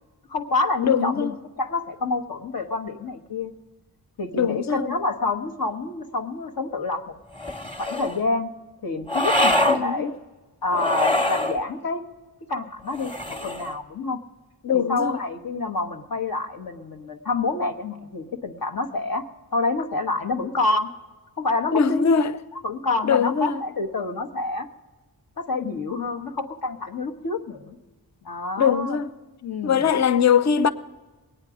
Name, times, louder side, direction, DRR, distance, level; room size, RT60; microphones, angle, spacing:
voice 1, 0.3-3.5 4.2-7.1 7.8-8.5 8.8-10.1 10.6-12.0 12.5-14.2 14.7-19.2 19.5-20.9 21.4-22.1 22.5-24.7 25.4-27.8 28.2-29.0 29.4-29.9, left 3 dB, 60° left, 1.2 m, -27 dB
voice 2, 0.8-1.3 4.3-4.9 9.7-10.1 14.6-15.2 21.7-22.3 23.1-23.6 28.6-29.1 29.6-30.7, left 7 dB, 45° left, 0.7 m, -21 dB
sound 1, 7.3-8.2 9.1-9.8 10.7-11.6 12.9-13.8, left 1 dB, 15° left, 1.3 m, -24 dB
20.5 x 9.0 x 5.0 m
cardioid pair, 65°, 39 cm